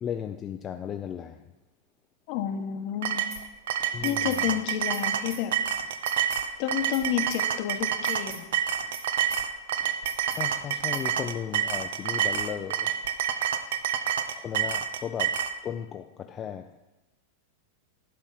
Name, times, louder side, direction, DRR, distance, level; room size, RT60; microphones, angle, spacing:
voice 1, 0.0-1.4 3.9-4.5 10.4-12.9 14.4-15.4 15.6-16.7, left 8 dB, 25° left, 6 dB, 0.4 m, -35 dB
voice 2, 2.3-3.2 4.0-5.5 6.6-8.5, left 9 dB, 50° left, 8 dB, 1.0 m, -30 dB
sound 1, 3.0-15.5, right 9 dB, 80° right, 0.7 m, -28 dB
sound 2, 3.3-3.4 3.8-4.4 4.8-5.0 5.3-5.4 5.8-6.4 6.8-7.0 7.3-7.4 7.8-8.4 8.8-9.0 9.3-9.4 9.8-10.4 10.8-11.0, right 6 dB, 50° right, 2.2 m, -43 dB
11.5 x 4.4 x 7.3 m, 1.0 s
supercardioid pair, 145°, 0 cm